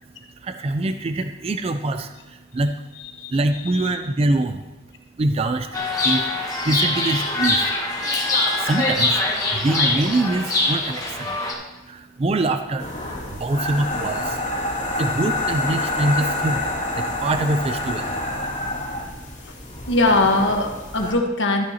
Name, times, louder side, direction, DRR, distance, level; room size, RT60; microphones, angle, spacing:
voice 1, 0.4-2.7 3.3-4.6 5.2-5.7 6.0-7.7 8.6-9.2 9.5-11.4 11.9-12.9 13.4-14.4 15.0-16.6 17.0-18.2, right 2 dB, 30° right, 8 dB, 0.3 m, -24 dB
voice 2, 2.9-4.0 19.4-19.5 19.9-21.6, left 2 dB, 70° left, 3 dB, 1.3 m, -22 dB
Chirp tweet, 5.7-11.5, left 2 dB, 20° left, 1.3 m, -23 dB
sound 1, 12.8-21.1, left 2 dB, 40° left, 2.2 m, -27 dB
13.0 x 9.1 x 2.8 m, 1.1 s
head